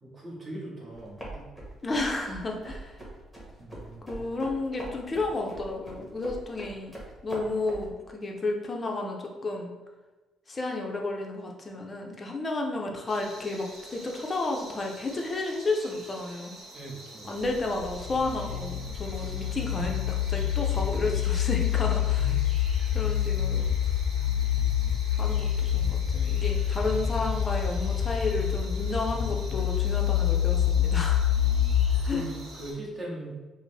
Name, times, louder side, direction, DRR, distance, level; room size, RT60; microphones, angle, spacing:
voice 1, 0.0-1.5 3.6-4.1 16.7-17.3 20.3-20.4 22.2-22.4 24.3-24.9 31.3-31.8 32.1-33.4, right 1 dB, 30° right, -4 dB, 1.1 m, -40 dB
sound 1, 0.9-7.9, right 1 dB, 5° left, 1.1 m, -43 dB
voice 2, 1.8-2.9 4.1-6.9 7.2-9.7 10.5-16.6 17.2-22.3 22.9-23.7 25.2-31.3 32.0-32.2, left 2 dB, 25° left, 1 dB, 0.6 m, -32 dB
sound 2, 13.1-32.7, right 2 dB, 55° right, 1.0 m, -47 dB
sound 3, 17.4-32.3, left 10 dB, 80° left, 0.5 m, -27 dB
4.9 x 2.1 x 3.3 m, 1.2 s
cardioid pair, 135°, 0 cm